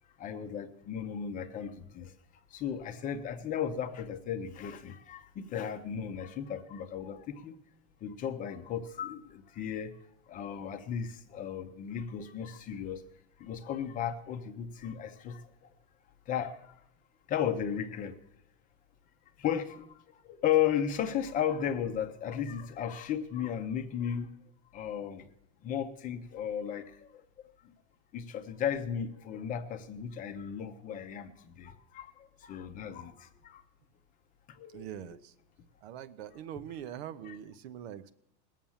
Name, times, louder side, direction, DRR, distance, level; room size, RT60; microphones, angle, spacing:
voice 1, 0.2-2.1 2.5-7.5 8.0-10.0 10.3-13.0 13.4-15.5 16.3-16.7 17.3-18.2 19.4-24.3 24.7-25.3 25.6-27.2 28.1-33.6 34.5-34.9, left 9 dB, 25° left, 7 dB, 0.7 m, -35 dB
voice 2, 34.7-35.3 35.8-38.1, right 10 dB, 65° right, 13 dB, 0.9 m, -43 dB
19.0 x 7.4 x 7.2 m, 0.78 s
supercardioid pair, 170°, 34 cm